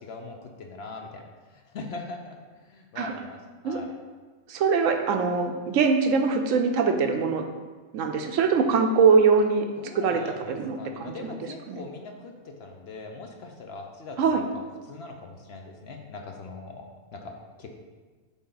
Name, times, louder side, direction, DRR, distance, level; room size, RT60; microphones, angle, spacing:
voice 1, 0.0-1.2 1.5-3.4 3.6-3.9 9.8-17.7, left 3 dB, 60° left, 3 dB, 0.8 m, -41 dB
voice 2, 4.5-7.4 7.9-9.7 9.9-10.2 10.5-11.3 11.7-11.8 14.2-14.4, right 5 dB, 80° right, 5 dB, 1.0 m, -22 dB
8.0 x 3.6 x 3.9 m, 1.4 s
omnidirectional pair, 1.4 m